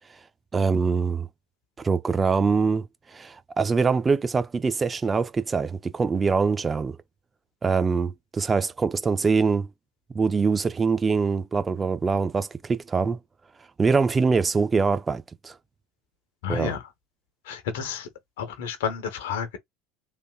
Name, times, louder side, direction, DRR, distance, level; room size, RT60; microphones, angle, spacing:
voice 1, 0.5-1.3 1.8-2.9 3.1-7.0 7.6-9.7 10.1-13.2 13.8-15.5 16.5-16.7, right 5 dB, 25° right, 0.6 m, -23 dB
voice 2, 16.4-16.8 17.4-18.1 18.4-19.6, left 7 dB, 75° left, 1.0 m, -31 dB
3.4 x 2.6 x 2.3 m
hypercardioid pair, 75°, 0 cm